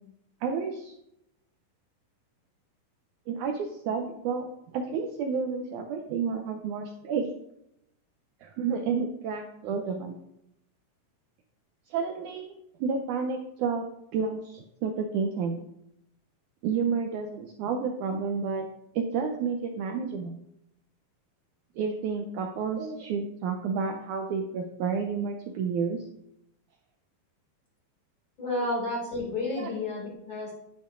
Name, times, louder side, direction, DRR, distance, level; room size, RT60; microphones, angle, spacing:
voice 1, 0.4-0.9 3.3-4.5 4.7-7.3 8.4-10.1 11.9-12.5 12.8-13.9 14.1-15.6 16.6-18.7 18.9-20.4 21.8-26.0 29.6-29.7, right 5 dB, 90° right, 4 dB, 1.7 m, -30 dB
voice 2, 28.4-30.5, left 2 dB, 40° left, -3 dB, 2.4 m, -31 dB
10.0 x 9.3 x 2.5 m, 0.80 s
omnidirectional pair, 4.3 m